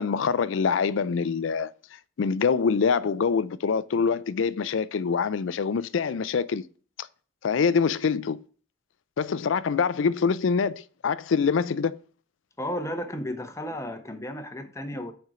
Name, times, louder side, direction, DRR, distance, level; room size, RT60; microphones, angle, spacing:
voice 1, 0.0-1.7 2.2-6.6 7.0-7.1 7.4-8.4 9.2-12.0, left 5 dB, 75° left, 0.4 m, -25 dB
voice 2, 12.6-15.1, equal, 15° left, 0.9 m, -33 dB
6.6 x 4.5 x 4.8 m
head